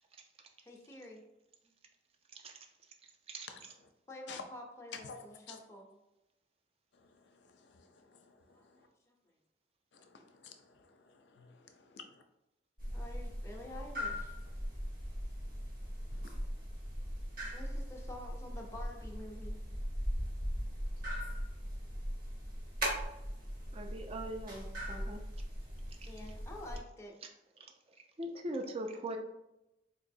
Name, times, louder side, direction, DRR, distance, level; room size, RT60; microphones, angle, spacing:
voice 1, 0.6-1.2 1.6-1.7 4.1-5.9 8.5-8.6 9.1-9.2 12.9-14.3 17.5-19.6 21.2-21.3 26.0-27.1, left 1 dB, 15° left, 0 dB, 0.5 m, -49 dB
voice 2, 5.0-5.6 7.0-8.9 9.9-12.2 16.1-16.3, left 5 dB, 70° left, 6 dB, 0.5 m, -53 dB
sound 1, 12.8-26.8, equal, 50° right, 1.1 m, -39 dB
voice 3, 23.7-25.2 26.0-26.1 27.6-29.2, right 1 dB, 35° right, 4 dB, 0.4 m, -41 dB
3.9 x 2.9 x 2.6 m, 0.90 s
head